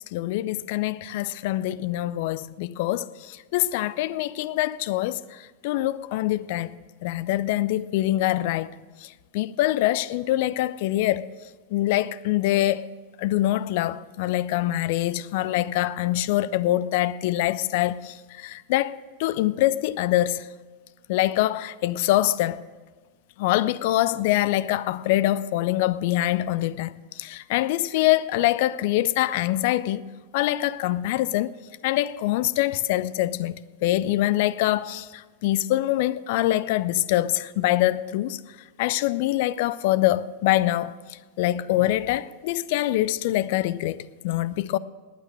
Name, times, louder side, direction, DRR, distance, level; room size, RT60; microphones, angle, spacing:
voice 1, 0.1-6.7 7.0-8.7 9.0-11.3 11.7-12.8 13.2-20.5 21.1-22.6 23.4-30.1 30.3-31.6 31.8-38.4 38.8-44.8, left 15 dB, 50° left, 0.5 m, -24 dB
19.0 x 9.2 x 6.3 m
figure-of-eight pair, 90°, 0 cm